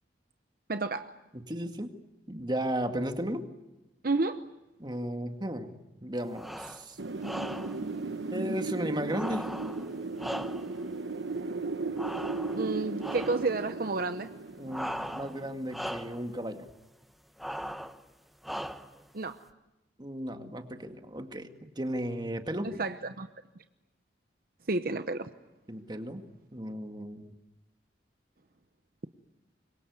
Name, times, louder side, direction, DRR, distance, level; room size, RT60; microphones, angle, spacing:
voice 1, 0.7-1.1 4.0-4.4 12.5-14.3 19.1-19.4 22.6-23.3 24.7-25.3, right 3 dB, 55° right, 0.9 m, -31 dB
voice 2, 1.3-1.9 2.3-3.4 4.8-5.7 6.0-7.0 8.3-9.5 14.6-16.7 20.0-22.7 25.7-26.2 26.5-27.3, right 1 dB, 25° right, 2.0 m, -35 dB
sound 1, 6.3-6.8 7.2-7.8 9.1-10.9 12.0-12.7 13.0-13.5 14.7-15.4 15.7-16.2 17.4-18.0 18.4-19.0, equal, ahead, 1.1 m, -38 dB
Wind, 7.0-15.7, right 3 dB, 90° right, 1.0 m, -36 dB
26.5 x 23.0 x 9.5 m
head